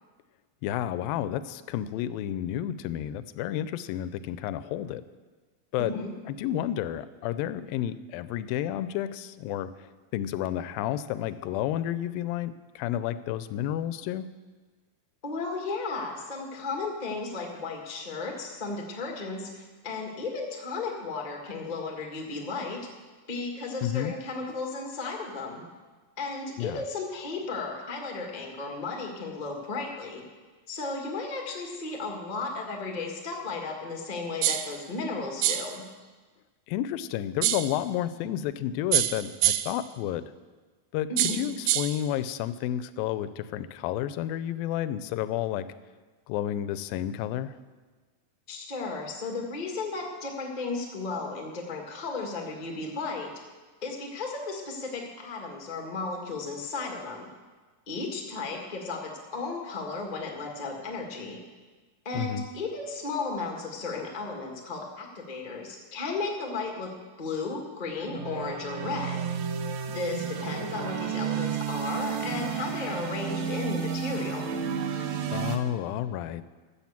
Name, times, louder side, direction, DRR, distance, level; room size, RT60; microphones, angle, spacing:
voice 1, 0.6-5.0 5.7-6.0 6.4-14.3 23.8-24.2 26.6-26.8 36.7-40.2 40.9-41.1 41.3-45.7 46.3-47.5 62.1-62.4 75.3-76.4, left 11 dB, 85° left, 14 dB, 2.3 m, -31 dB
voice 2, 5.8-6.1 15.2-22.8 23.3-25.6 26.2-30.2 30.7-35.8 41.1-41.4 48.5-53.3 53.8-57.3 57.9-61.4 62.0-66.9 67.2-69.2 69.9-74.5, left 3 dB, 35° left, 1 dB, 0.7 m, -34 dB
sound 1, 34.4-34.8 35.4-35.8 37.4-37.8 38.9-39.8 41.2-42.0, right 14 dB, 90° right, 1.7 m, -26 dB
sound 2, 68.0-75.6, right 7 dB, 70° right, 1.9 m, -32 dB
13.5 x 7.6 x 7.3 m, 1.4 s
omnidirectional pair, 4.1 m